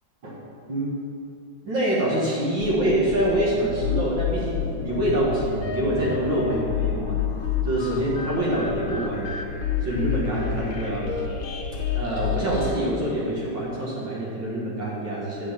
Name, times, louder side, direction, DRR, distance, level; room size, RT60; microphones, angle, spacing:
voice 1, 1.6-7.2 7.6-9.3 9.8-11.1 11.9-15.5, right 1 dB, 70° right, -6 dB, 2.5 m, -25 dB
sound 1, 2.6-12.7, left 7 dB, 85° left, 1.7 m, -29 dB
8.6 x 4.6 x 7.4 m, 2.4 s
omnidirectional pair, 2.1 m